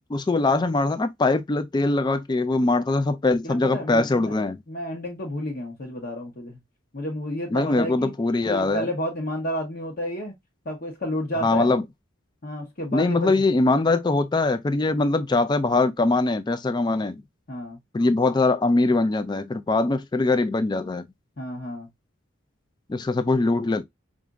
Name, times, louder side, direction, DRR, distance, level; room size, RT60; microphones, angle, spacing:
voice 1, 0.1-4.6 7.5-8.9 11.4-11.8 12.9-17.2 17.9-21.1 22.9-23.8, left 2 dB, 20° left, 0.3 m, -22 dB
voice 2, 3.4-4.3 4.7-6.6 6.9-8.1 8.5-10.3 10.6-11.7 12.4-13.3 17.5-17.8 21.4-21.9, equal, 45° left, 1.0 m, -31 dB
4.9 x 2.5 x 2.3 m
head